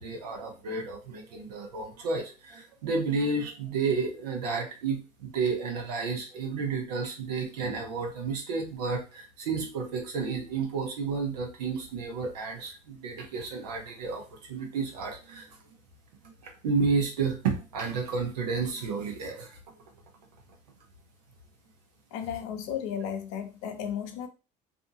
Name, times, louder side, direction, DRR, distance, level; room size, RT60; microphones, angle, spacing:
voice 1, 0.0-15.5 16.2-16.3 16.6-19.6, right 4 dB, 90° right, 2 dB, 0.8 m, -31 dB
voice 2, 22.1-24.3, left 8 dB, 75° left, 7 dB, 0.6 m, -34 dB
2.6 x 2.5 x 2.6 m, 0.31 s
hypercardioid pair, 70°, 20 cm